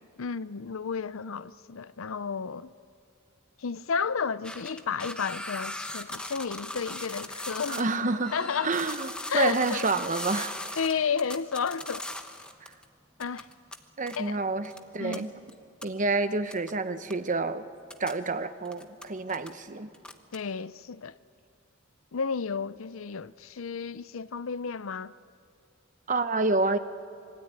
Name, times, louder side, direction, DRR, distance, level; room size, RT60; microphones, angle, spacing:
voice 1, 0.2-2.7 3.6-7.8 8.3-8.7 9.3-9.9 10.8-12.1 13.2-13.5 14.2-14.4 15.0-15.3 20.3-21.2 22.1-25.1, left 6 dB, 75° left, 0.6 m, -32 dB
sound 1, 4.4-7.8 8.1-12.8 13.2-13.8 14.1-14.2 14.7-14.8 15.1-15.2 15.5-15.6 15.8-15.9 16.5-16.7 17.1-17.2 17.8-18.2 18.7-19.5 19.9-20.4, left 1 dB, 5° left, 1.2 m, -38 dB
voice 2, 7.7-8.4 8.6-10.6 12.6-12.7 14.0-15.3 15.8-17.6 18.0-19.9 26.1-26.8, right 3 dB, 40° right, 1.0 m, -28 dB
26.0 x 23.0 x 9.5 m
head